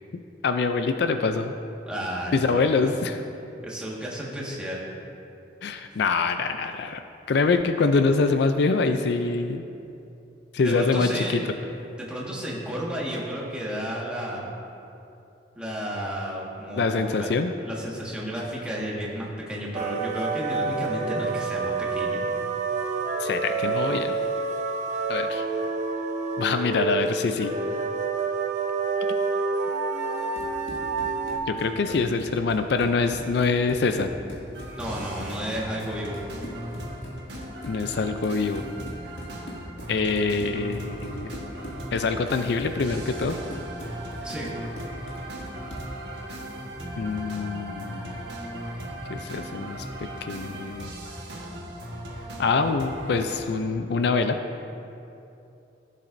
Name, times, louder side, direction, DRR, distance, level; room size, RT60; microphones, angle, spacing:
voice 1, 0.4-1.5 2.3-3.2 5.6-7.0 7.3-9.6 10.5-11.4 16.7-17.5 23.2-24.2 25.1-25.4 26.4-27.5 31.5-34.1 37.7-38.6 39.9-41.3 41.9-43.4 47.0-48.2 49.1-50.9 52.4-54.4, left 4 dB, 60° left, 8 dB, 0.4 m, -25 dB
voice 2, 1.9-2.9 3.6-4.8 5.9-6.0 10.6-11.4 12.0-14.5 15.5-17.3 17.6-22.2 31.9-32.0 34.7-36.2 44.2-44.5, equal, 5° right, -5 dB, 1.6 m, -32 dB
sound 1, 19.7-31.4, right 4 dB, 40° right, 0.8 m, -28 dB
Run, 30.1-46.0, equal, 90° left, 1.9 m, -41 dB
sound 2, 34.5-53.4, right 1 dB, 60° right, 1.4 m, -38 dB
15.5 x 7.4 x 2.6 m, 2.7 s
head